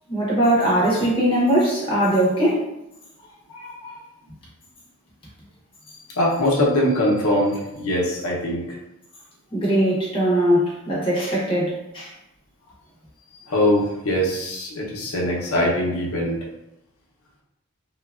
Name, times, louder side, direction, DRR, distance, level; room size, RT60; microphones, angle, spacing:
voice 1, 0.1-2.7 9.5-12.1, right 1 dB, 25° left, -6 dB, 0.6 m, -20 dB
voice 2, 3.5-4.0 6.2-8.6 13.5-16.4, left 1 dB, 80° left, -3 dB, 0.7 m, -22 dB
3.1 x 2.2 x 2.3 m, 0.86 s
head